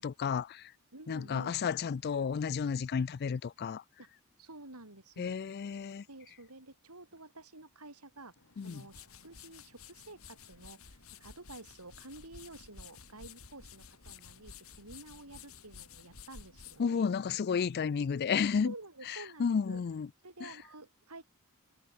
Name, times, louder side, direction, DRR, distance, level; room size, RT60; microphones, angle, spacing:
voice 1, 0.0-0.7 1.1-3.8 5.2-6.0 8.6-8.8 16.8-18.7 19.1-20.1 20.4-20.5, left 6 dB, 45° left, 0.4 m, -32 dB
voice 2, 0.9-1.6 4.0-4.1 4.4-5.4 6.1-17.1 18.6-19.8 20.2-21.2, right 2 dB, 85° right, 7.2 m, -51 dB
sound 1, 8.4-17.7, left 6 dB, 65° left, 2.9 m, -53 dB
head